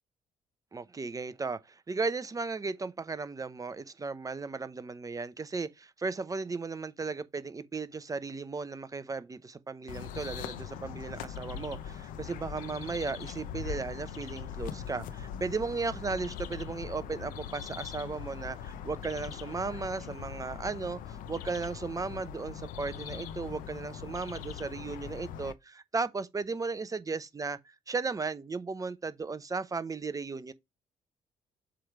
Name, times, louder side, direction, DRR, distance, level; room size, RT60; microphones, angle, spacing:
voice 1, 0.7-30.5, right 4 dB, 25° right, 0.7 m, -36 dB
sound 1, 9.9-25.5, left 8 dB, 90° left, 0.7 m, -41 dB
7.7 x 3.3 x 4.7 m
cardioid pair, 95°, 14 cm